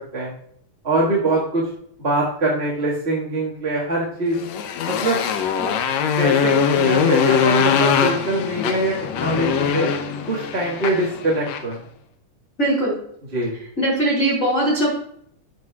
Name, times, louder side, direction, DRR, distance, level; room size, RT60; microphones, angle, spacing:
voice 1, 0.8-1.7 2.0-4.4 5.0-5.2 6.2-9.9 10.2-11.8 13.3-13.5, right 1 dB, 30° right, -5 dB, 1.4 m, -23 dB
Motorcycle, 4.3-11.7, left 7 dB, 70° left, 1.9 m, -21 dB
voice 2, 12.6-12.9 13.8-14.9, right 1 dB, 25° left, -5 dB, 2.8 m, -20 dB
12.0 x 7.7 x 2.4 m, 0.67 s
omnidirectional pair, 3.6 m